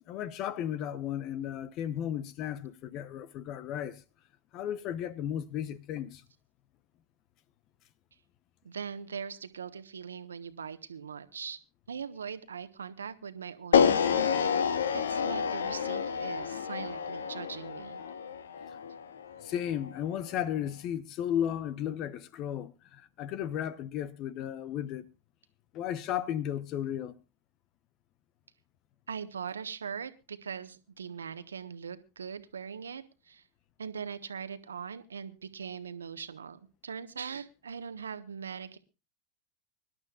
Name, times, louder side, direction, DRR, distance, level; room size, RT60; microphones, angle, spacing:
voice 1, 0.1-4.0 4.5-6.2 18.7-18.8 19.4-25.1 25.7-27.1, left 10 dB, 50° left, 0.9 m, -34 dB
voice 2, 8.6-11.6 11.9-14.2 14.9-18.0 29.1-33.4 33.8-38.8, right 6 dB, 85° right, 1.2 m, -41 dB
sound 1, 13.7-19.9, left 7 dB, 80° left, 1.1 m, -29 dB
24.5 x 11.5 x 2.4 m
hypercardioid pair, 90°, 0 cm